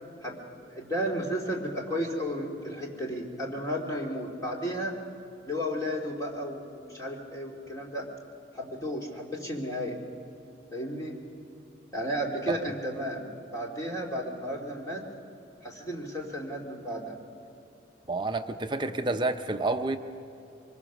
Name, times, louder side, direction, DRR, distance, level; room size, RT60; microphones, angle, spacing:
voice 1, 0.7-5.0 5.4-8.1 8.5-10.0 10.7-11.2 11.9-15.0 15.6-17.2, equal, 20° left, -1 dB, 2.5 m, -33 dB
voice 2, 18.1-20.0, right 2 dB, 25° right, 7 dB, 0.7 m, -29 dB
24.0 x 21.5 x 6.0 m, 2.8 s
head